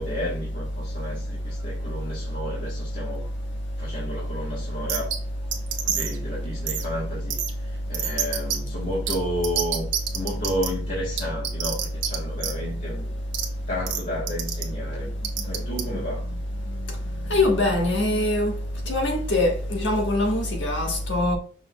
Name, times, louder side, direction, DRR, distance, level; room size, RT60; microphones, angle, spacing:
voice 1, 0.0-3.2 3.8-5.1 5.8-9.9 10.1-13.1 13.7-15.1 15.4-16.2, equal, 50° left, 1.5 m, -32 dB
sound 1, 4.9-5.2 5.5-6.2 6.7-6.8 7.3-7.5 7.9-8.6 9.1-9.2 9.4-10.7 11.2-12.2 12.4-12.5 13.3-13.5 13.9-14.0 14.3-14.6 15.2-15.8, right 9 dB, 90° right, 0.9 m, -27 dB
voice 2, 17.3-18.5 18.9-21.4, left 2 dB, 80° left, 1.3 m, -23 dB
5.9 x 3.7 x 2.3 m
head